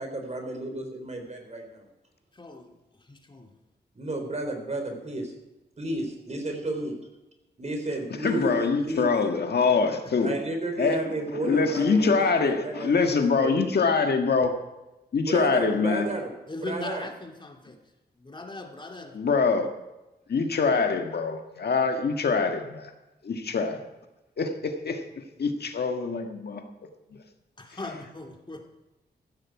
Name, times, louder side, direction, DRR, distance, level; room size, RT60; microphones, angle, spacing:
voice 1, 0.0-1.9 3.9-5.3 5.8-7.0 7.6-9.1 10.2-13.7 15.2-16.3 16.6-17.1, right 2 dB, 40° right, 4 dB, 3.9 m, -32 dB
voice 2, 2.3-2.7 3.0-3.5 16.5-17.8 18.2-19.2 27.6-28.7, left 2 dB, 30° left, 3 dB, 2.5 m, -39 dB
voice 3, 8.2-10.4 10.8-11.0 11.4-14.5 15.1-16.1 19.1-19.7 20.3-22.9 23.2-23.8 24.4-25.0 25.4-26.6, left 4 dB, 70° left, 5 dB, 1.7 m, -24 dB
15.0 x 13.0 x 4.8 m, 1.0 s
cardioid pair, 70°, 17 cm